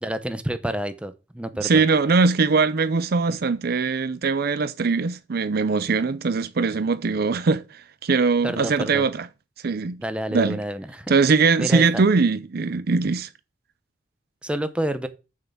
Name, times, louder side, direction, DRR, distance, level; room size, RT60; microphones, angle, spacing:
voice 1, 0.0-1.9 8.4-9.1 10.0-11.1 11.6-12.0 14.4-15.1, right 1 dB, 5° right, 0.8 m, -29 dB
voice 2, 1.6-9.3 9.6-10.0 10.3-10.6 11.1-13.3, right 4 dB, 55° right, 0.5 m, -21 dB
6.7 x 6.5 x 7.2 m
head